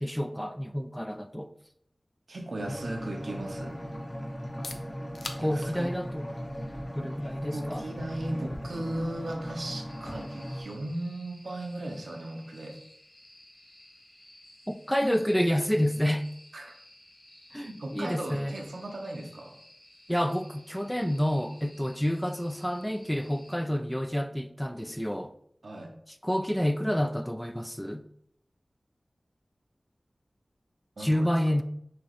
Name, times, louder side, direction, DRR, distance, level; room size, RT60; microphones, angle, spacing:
voice 1, 0.0-1.5 5.4-6.3 6.9-7.8 14.7-16.3 17.5-18.6 20.1-25.3 26.2-28.0 31.0-31.6, equal, 5° left, 0.3 m, -29 dB
voice 2, 2.3-3.8 5.2-5.9 7.4-12.8 16.5-16.7 17.6-19.5 25.6-25.9 31.0-31.3, right 1 dB, 85° right, 0.8 m, -37 dB
sound 1, 2.6-10.6, equal, 40° left, 1.1 m, -38 dB
sound 2, 4.4-20.0, left 3 dB, 90° left, 0.4 m, -53 dB
sound 3, 9.9-23.6, left 1 dB, 70° left, 1.3 m, -55 dB
6.0 x 2.8 x 3.1 m
wide cardioid pair, 55°, 0 cm